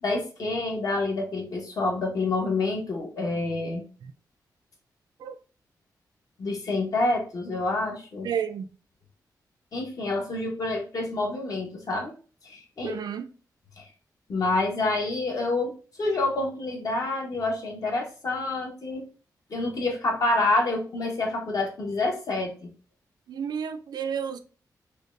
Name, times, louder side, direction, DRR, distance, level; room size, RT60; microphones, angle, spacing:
voice 1, 0.0-3.8 6.4-8.3 9.7-12.1 12.4-13.0 13.8-13.9 14.3-15.7 16.0-19.1 19.5-22.7, left 2 dB, 55° left, 1.1 m, -27 dB
voice 2, 8.2-8.7 12.8-13.3 23.3-24.4, right 7 dB, 75° right, 0.4 m, -31 dB
5.2 x 2.2 x 2.5 m
wide cardioid pair, 140°, 7 cm